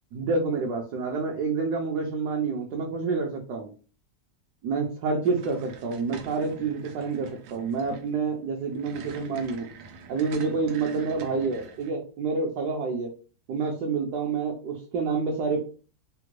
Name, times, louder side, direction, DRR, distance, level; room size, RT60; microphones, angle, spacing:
voice 1, 0.1-3.7 4.6-9.7 10.1-13.1 13.5-15.6, right 4 dB, 70° right, 0 dB, 1.0 m, -28 dB
sound 1, 5.2-11.9, right 6 dB, 85° right, 1.3 m, -46 dB
3.4 x 2.2 x 3.0 m, 0.37 s
omnidirectional pair, 2.1 m